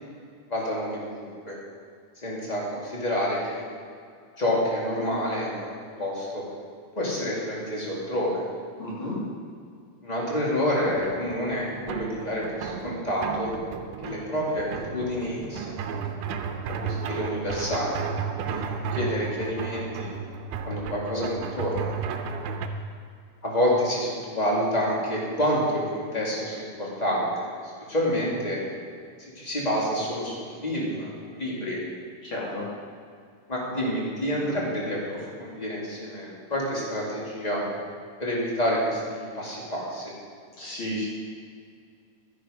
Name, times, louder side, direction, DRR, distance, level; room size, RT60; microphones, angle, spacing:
voice 1, 0.5-1.6 2.2-3.6 4.4-6.4 7.0-8.4 10.0-13.5 14.0-16.0 16.8-20.1 20.6-21.9 23.4-28.6 29.2-31.8 33.5-37.6 38.2-40.1, equal, 15° left, -4 dB, 1.8 m, -28 dB
voice 2, 8.8-9.2 32.2-32.7 40.6-41.1, left 1 dB, 35° left, -6 dB, 3.4 m, -32 dB
sound 1, 10.9-22.7, right 6 dB, 80° right, 2.5 m, -33 dB
12.0 x 10.5 x 5.1 m, 2.2 s
omnidirectional pair, 4.3 m